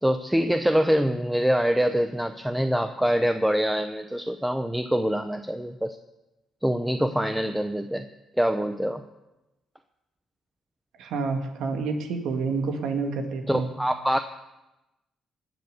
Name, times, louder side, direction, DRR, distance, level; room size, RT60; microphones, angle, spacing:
voice 1, 0.0-6.0 6.6-8.0 8.4-9.0 13.5-14.2, equal, 5° right, 8 dB, 0.7 m, -24 dB
voice 2, 11.0-13.7, right 4 dB, 85° right, 5 dB, 1.9 m, -28 dB
19.5 x 7.0 x 6.6 m, 0.98 s
cardioid pair, 90°, 0 cm